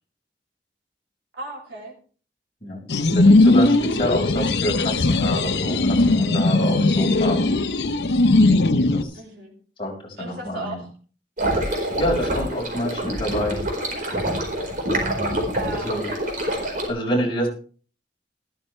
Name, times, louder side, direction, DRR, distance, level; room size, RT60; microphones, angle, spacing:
voice 1, 1.4-1.9 9.1-9.5 10.2-10.9 15.5-16.2, right 2 dB, 85° right, -2 dB, 3.2 m, -35 dB
sound 1, 2.9-9.0, left 2 dB, 70° left, 0.9 m, -18 dB
voice 2, 3.1-7.4 8.9-9.2 9.8-10.8 12.0-13.6 14.8-14.9 15.2-15.4 15.8-16.1 16.9-17.5, equal, 30° left, -2 dB, 5.4 m, -27 dB
sound 2, 11.4-16.9, right 1 dB, 50° right, 4.7 m, -26 dB
14.0 x 13.0 x 3.3 m, 0.40 s
head